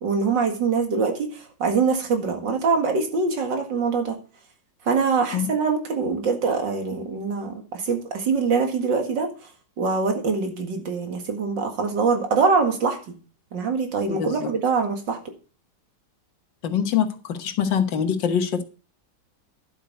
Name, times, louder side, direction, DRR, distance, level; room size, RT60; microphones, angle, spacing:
voice 1, 0.0-4.2 4.9-9.3 9.8-13.1 13.5-15.2, right 5 dB, 90° right, 4 dB, 2.6 m, -24 dB
voice 2, 14.1-14.5 16.6-18.6, left 8 dB, 90° left, 8 dB, 1.9 m, -24 dB
11.0 x 8.2 x 5.3 m, 0.37 s
omnidirectional pair, 1.9 m